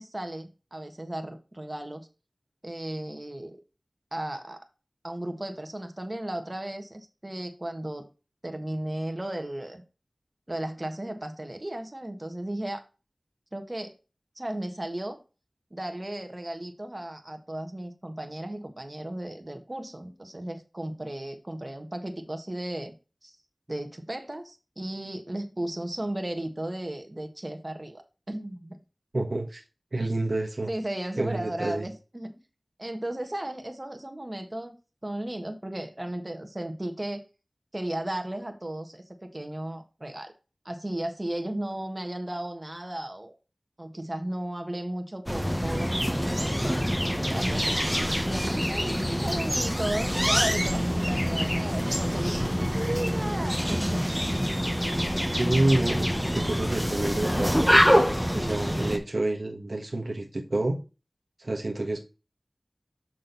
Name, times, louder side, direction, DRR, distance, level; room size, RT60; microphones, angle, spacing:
voice 1, 0.0-2.1 2.6-3.6 4.1-4.6 5.0-8.1 8.4-9.8 10.5-12.8 13.5-13.9 14.3-15.2 15.7-22.9 23.2-23.4 23.7-28.0 28.3-28.8 30.7-32.4 32.8-34.7 35.0-37.2 37.7-40.3 40.6-43.4 43.8-46.8 47.3-54.2 58.3-58.7, right 1 dB, 30° right, 1.5 m, -35 dB
voice 2, 29.1-29.6 29.9-30.7 31.2-31.9 55.4-57.6 58.3-60.8 61.4-62.0, right 2 dB, 60° right, 1.4 m, -28 dB
sound 1, 45.3-59.0, equal, ahead, 1.2 m, -26 dB
6.4 x 6.2 x 4.0 m
wide cardioid pair, 50°, 0 cm